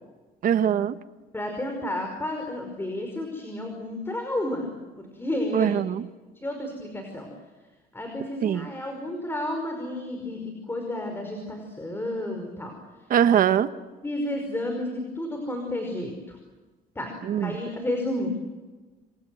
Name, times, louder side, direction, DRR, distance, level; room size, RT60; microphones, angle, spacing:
voice 1, 0.4-1.0 5.5-6.1 8.4-8.7 13.1-13.7 17.2-17.6, right 9 dB, 55° right, 11 dB, 1.3 m, -22 dB
voice 2, 1.3-4.7 5.0-5.7 6.4-7.3 7.9-12.7 14.0-16.4 17.0-18.3, left 1 dB, 15° left, 3 dB, 5.3 m, -31 dB
28.0 x 24.0 x 7.9 m, 1.3 s
cardioid pair, 110°, 17 cm